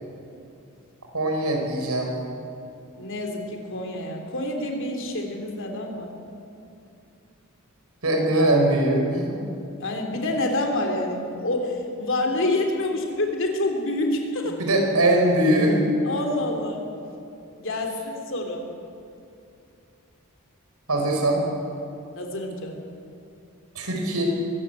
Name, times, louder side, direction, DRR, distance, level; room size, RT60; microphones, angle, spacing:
voice 1, 1.1-2.2 8.0-9.4 14.6-15.9 20.9-21.4 23.8-24.3, right 1 dB, 85° right, 1 dB, 5.1 m, -21 dB
voice 2, 3.0-6.1 9.8-14.6 16.0-16.8 17.6-18.6 22.1-22.8, left 1 dB, 60° left, 3 dB, 3.3 m, -27 dB
22.5 x 15.0 x 8.5 m, 2.7 s
head